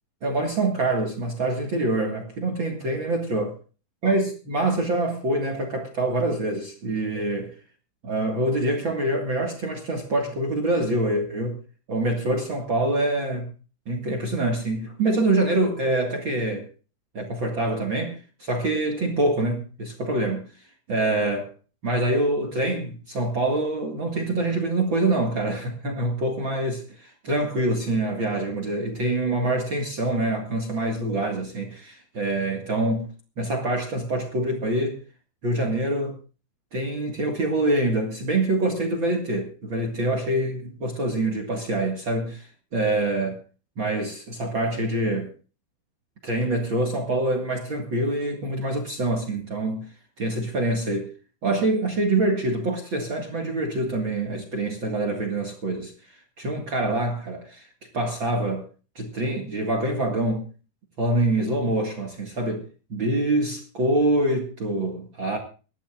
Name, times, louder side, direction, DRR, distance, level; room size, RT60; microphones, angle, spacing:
voice 1, 0.2-3.5 4.0-7.5 8.0-11.6 11.9-13.5 13.8-16.7 17.1-20.4 20.9-21.5 21.8-33.1 33.4-35.0 35.4-36.2 36.7-43.4 43.8-45.3 46.2-49.9 50.2-51.1 51.4-55.9 56.4-57.7 57.9-58.6 58.9-60.5 61.0-65.4, right 2 dB, 60° right, 2 dB, 1.3 m, -25 dB
24.5 x 12.0 x 2.5 m, 0.35 s
omnidirectional pair, 5.3 m